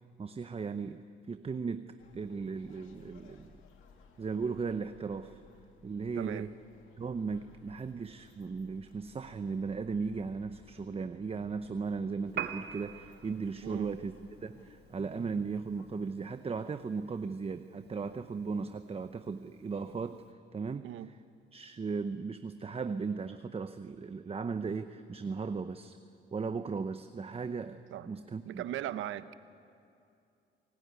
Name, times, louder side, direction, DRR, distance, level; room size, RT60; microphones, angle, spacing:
voice 1, 0.2-1.9 2.1-3.5 4.2-5.4 5.8-6.5 7.0-14.1 14.4-20.2 20.5-20.8 21.5-26.0 26.3-28.6, right 5 dB, 30° right, 0.8 m, -37 dB
sound 1, 2.0-16.0, left 5 dB, 85° left, 2.2 m, -60 dB
voice 2, 6.1-6.5 13.6-13.9 20.8-21.1 27.9-28.1 28.4-29.3, right 12 dB, 80° right, 0.9 m, -38 dB
Piano, 12.3-20.3, right 8 dB, 55° right, 1.5 m, -47 dB
27.5 x 18.0 x 9.6 m
cardioid pair, 90°, 20 cm